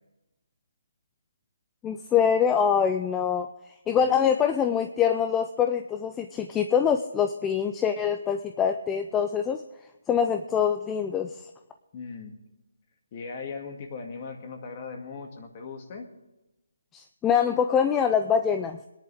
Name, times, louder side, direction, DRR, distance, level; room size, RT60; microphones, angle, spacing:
voice 1, 1.8-3.5 3.9-9.6 10.1-11.3 16.9-18.9, left 7 dB, 10° left, 7 dB, 0.5 m, -24 dB
voice 2, 11.9-12.4 13.1-16.1, left 4 dB, 35° left, 4 dB, 2.2 m, -39 dB
21.0 x 10.5 x 3.5 m, 1.0 s
hypercardioid pair, 160°, 0 cm